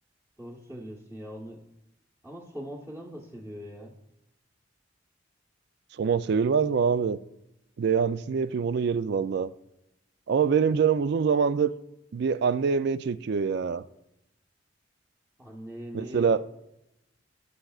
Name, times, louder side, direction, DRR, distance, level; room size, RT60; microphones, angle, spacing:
voice 1, 0.4-1.6 2.2-4.0 10.6-10.7 15.4-16.3, equal, 15° right, 1.0 m, -41 dB
voice 2, 6.0-7.2 7.8-9.5 10.3-11.7 12.1-13.8 15.9-16.4, right 6 dB, 60° right, 0.4 m, -24 dB
17.5 x 6.6 x 2.4 m
head